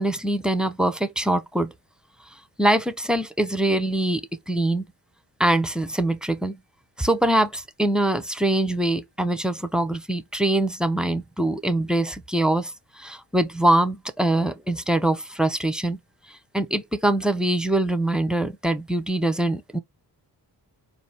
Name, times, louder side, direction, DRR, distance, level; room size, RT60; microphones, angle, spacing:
voice 1, 0.0-1.7 2.6-4.2 4.5-4.8 5.4-6.6 7.0-12.7 13.0-16.0 16.5-19.8, right 1 dB, ahead, 0.4 m, -23 dB
4.2 x 2.4 x 3.2 m
wide cardioid pair, 125°, 42 cm